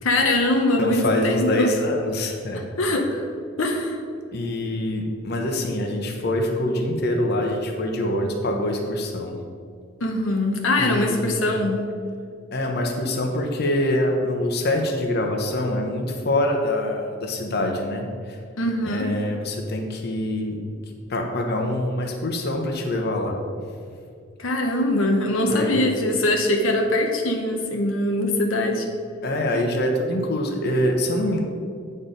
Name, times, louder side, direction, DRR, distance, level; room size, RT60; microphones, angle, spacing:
voice 1, 0.0-1.7 2.8-3.2 3.6-4.0 10.0-11.8 18.6-19.1 24.4-28.9, left 1 dB, 85° left, 2 dB, 0.8 m, -22 dB
voice 2, 0.8-2.6 4.3-9.4 10.8-11.4 12.5-18.4 18.8-20.6 21.1-23.4 25.5-25.8 29.2-31.4, left 1 dB, 55° left, 2 dB, 0.9 m, -25 dB
8.7 x 4.4 x 5.1 m, 2.2 s
head